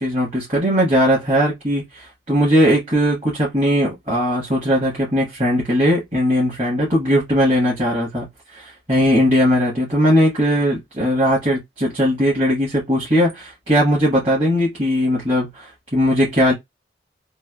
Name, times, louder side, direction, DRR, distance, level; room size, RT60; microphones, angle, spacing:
voice 1, 0.0-16.5, equal, 30° right, 1.2 m, -19 dB
3.2 x 2.3 x 2.2 m
head